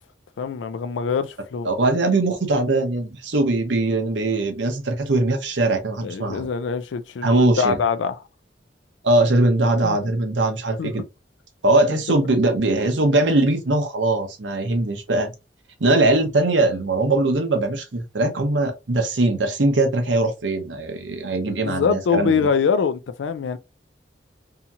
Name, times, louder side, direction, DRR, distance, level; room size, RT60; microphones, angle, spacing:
voice 1, 0.4-1.7 6.0-8.2 9.8-10.0 10.8-10.9 21.4-23.6, left 6 dB, 85° left, 0.4 m, -24 dB
voice 2, 1.6-6.5 7.2-7.8 9.0-11.0 11.6-15.3 15.8-22.5, right 2 dB, 85° right, 0.8 m, -21 dB
2.8 x 2.8 x 2.3 m
head